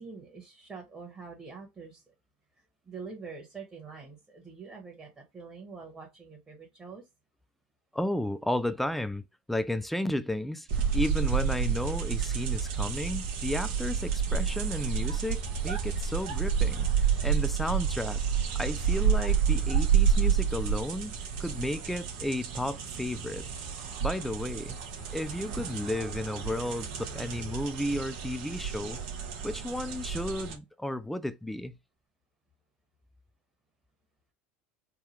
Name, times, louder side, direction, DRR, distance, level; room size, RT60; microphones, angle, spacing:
voice 1, 0.0-2.0 2.8-7.0, right 5 dB, 20° right, 1.3 m, -45 dB
voice 2, 7.9-10.7 10.9-18.2 18.5-21.1 21.4-23.5 24.0-24.8 25.1-29.0 29.4-31.8, left 1 dB, 5° left, 0.4 m, -33 dB
sound 1, 10.7-30.6, right 7 dB, 70° right, 1.1 m, -29 dB
3.6 x 2.2 x 3.1 m
hypercardioid pair, 90°, 5 cm